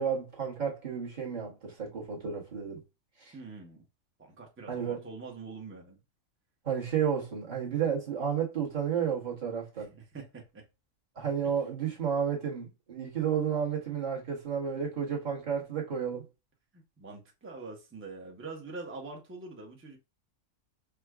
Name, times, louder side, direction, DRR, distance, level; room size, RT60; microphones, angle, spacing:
voice 1, 0.0-2.8 3.2-3.3 4.7-5.0 6.6-9.9 11.1-16.3, right 7 dB, 35° right, 1.1 m, -32 dB
voice 2, 3.3-3.8 4.2-6.0 9.8-10.6 16.7-20.0, right 3 dB, 15° right, 0.4 m, -44 dB
4.8 x 2.2 x 2.3 m
omnidirectional pair, 1.6 m